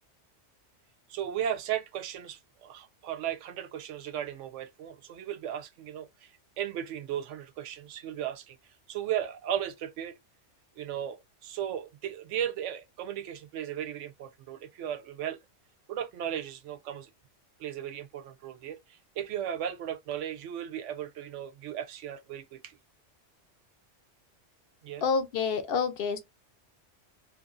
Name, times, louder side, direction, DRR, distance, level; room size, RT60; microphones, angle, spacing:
voice 1, 1.1-10.2 10.8-15.4 15.9-17.1 17.6-22.8 24.8-25.0, right 10 dB, 90° right, 0.9 m, -36 dB
voice 2, 25.0-26.2, left 5 dB, 60° left, 0.7 m, -28 dB
3.0 x 2.6 x 2.4 m
omnidirectional pair, 1.2 m